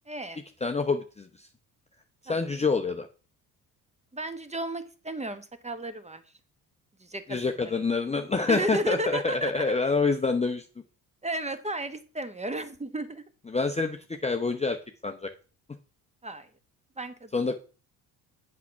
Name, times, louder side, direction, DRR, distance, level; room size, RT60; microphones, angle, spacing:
voice 1, 0.1-0.4 2.3-2.4 4.1-6.2 7.0-7.7 8.5-9.6 11.2-13.2 16.2-16.5 17.0-17.5, right 1 dB, 15° right, 11 dB, 1.2 m, -34 dB
voice 2, 0.6-1.5 2.2-3.1 7.3-10.6 13.5-15.3 17.3-17.5, left 4 dB, 15° left, 5 dB, 0.8 m, -27 dB
8.2 x 5.7 x 5.8 m, 0.36 s
hypercardioid pair, 55°, 49 cm